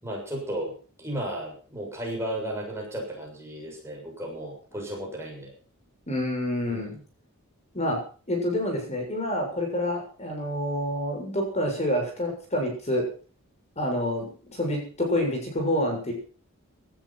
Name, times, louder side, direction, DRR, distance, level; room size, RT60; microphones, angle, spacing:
voice 1, 0.0-5.5 6.7-7.0, right 1 dB, 10° right, -1 dB, 7.1 m, -34 dB
voice 2, 6.1-6.9 7.7-8.0 8.3-13.1 13.8-16.1, left 1 dB, 30° left, 2 dB, 7.1 m, -27 dB
17.5 x 13.0 x 5.9 m, 0.40 s
head